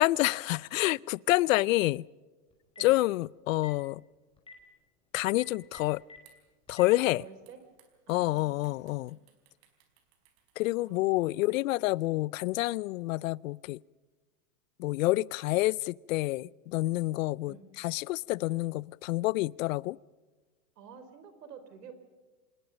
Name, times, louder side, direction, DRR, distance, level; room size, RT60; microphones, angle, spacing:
voice 1, 0.0-2.1 2.8-4.0 5.1-6.0 6.7-7.2 8.1-9.2 10.6-13.8 14.8-20.0, left 19 dB, 60° left, 0.6 m, -28 dB
Telephone, 2.5-3.0 3.5-3.8 4.4-4.5 5.3-6.2 6.7-6.8, left 4 dB, 10° left, 5.2 m, -49 dB
sound 1, 5.8-12.3, right 9 dB, 45° right, 4.4 m, -66 dB
voice 2, 7.2-7.6 8.1-9.2 10.8-11.8 17.5-17.7 20.8-21.9, right 6 dB, 90° right, 4.4 m, -51 dB
26.5 x 20.5 x 5.3 m
supercardioid pair, 145°, 46 cm